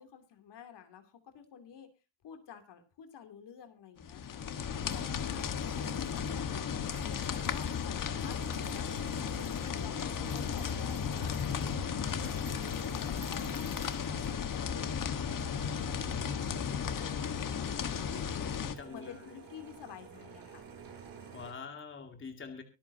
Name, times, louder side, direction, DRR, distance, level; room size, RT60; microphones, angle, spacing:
voice 1, 0.0-1.9 2.2-4.5 4.9-11.4 11.8-13.6 14.0-18.6 18.9-20.7, left 8 dB, 60° left, 7 dB, 3.0 m, -52 dB
sound 1, 4.0-18.7, left 7 dB, 40° left, 1.5 m, -35 dB
voice 2, 4.5-5.5 10.2-10.5 14.6-14.7 16.8-17.2 18.1-19.3 21.3-22.6, left 4 dB, 25° left, 5 dB, 2.3 m, -47 dB
sound 2, 4.8-21.5, right 6 dB, 45° right, 4.9 m, -50 dB
24.5 x 8.4 x 2.8 m, 0.28 s
cardioid pair, 150°, 47 cm